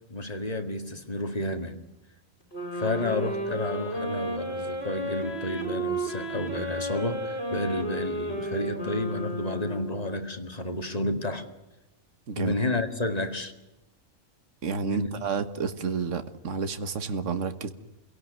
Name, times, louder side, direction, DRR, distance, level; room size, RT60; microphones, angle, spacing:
voice 1, 0.1-1.8 2.7-11.5 12.4-13.5 14.9-15.1, left 2 dB, 30° left, 6 dB, 2.2 m, -31 dB
sound 1, 2.5-10.2, right 1 dB, 50° left, 5.4 m, -33 dB
voice 2, 14.6-17.7, right 5 dB, 70° right, 10 dB, 1.7 m, -30 dB
26.5 x 17.5 x 9.5 m, 1.0 s
omnidirectional pair, 1.3 m